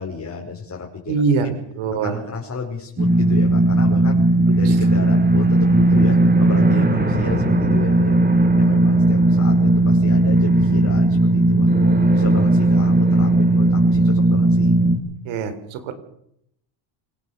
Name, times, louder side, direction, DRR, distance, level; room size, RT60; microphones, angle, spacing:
voice 1, 0.0-1.1 1.4-1.5 2.0-4.2 4.6-8.2 8.6-11.7 12.1-14.8, left 5 dB, 35° left, -1 dB, 5.7 m, -32 dB
voice 2, 1.1-1.5 1.8-2.2 15.3-15.9, right 5 dB, 85° right, 10 dB, 4.1 m, -22 dB
sound 1, 3.0-15.0, right 2 dB, 20° right, 3.6 m, -16 dB
27.0 x 18.0 x 6.9 m, 0.75 s
cardioid pair, 105°, 46 cm